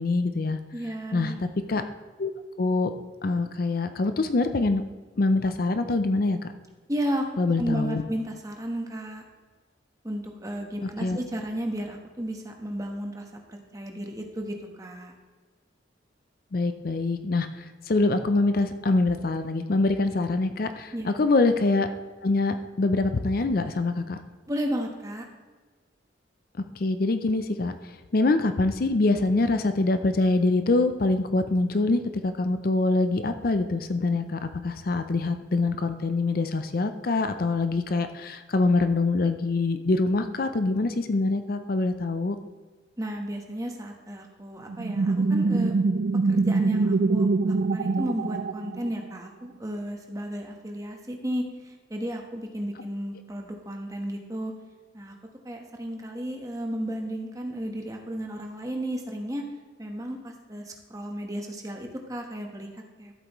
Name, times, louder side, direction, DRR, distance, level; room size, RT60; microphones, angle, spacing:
voice 1, 0.0-0.6 1.1-1.3 1.7-1.8 2.2-2.3 2.6-2.9 3.2-4.8 5.2-6.4 7.4-8.0 10.8-11.2 16.5-21.9 22.2-24.2 26.8-27.7 28.1-42.4, left 3 dB, 50° left, 9 dB, 0.5 m, -24 dB
voice 2, 0.7-1.3 6.9-7.3 7.6-9.2 10.0-15.1 20.9-21.1 24.5-25.3 43.0-45.7 46.3-54.5 54.9-55.1 55.4-59.4 59.8-63.1, equal, 20° right, 2 dB, 1.1 m, -33 dB
sound 1, 44.7-49.2, right 3 dB, 55° right, 0.3 m, -24 dB
13.0 x 7.9 x 3.1 m, 1.4 s
head